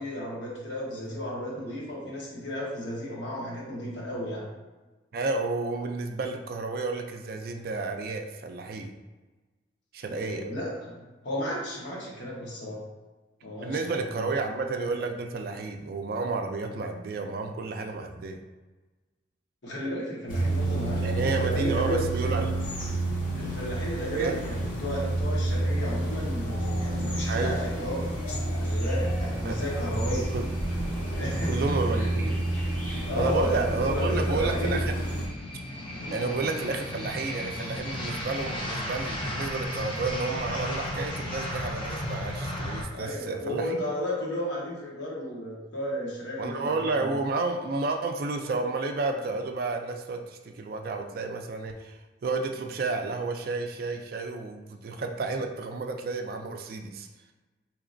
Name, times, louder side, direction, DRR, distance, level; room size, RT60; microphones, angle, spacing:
voice 1, 0.0-4.5 10.1-12.8 13.4-14.4 19.6-22.0 23.4-28.1 28.6-30.3 31.0-32.1 32.9-34.8 35.9-36.2 42.9-47.2, equal, 70° left, -4 dB, 1.1 m, -34 dB
voice 2, 5.1-8.9 9.9-10.5 13.6-18.4 21.0-22.5 24.2-24.4 27.3-27.6 29.4-29.6 30.3-30.5 31.4-32.4 33.1-34.9 36.1-43.8 46.4-57.1, right 3 dB, 50° right, 4 dB, 0.3 m, -31 dB
sound 1, 20.3-35.3, right 1 dB, 45° left, 0.8 m, -29 dB
sound 2, 27.1-42.8, left 1 dB, 25° left, 0.4 m, -36 dB
4.0 x 2.8 x 2.5 m, 1.2 s
head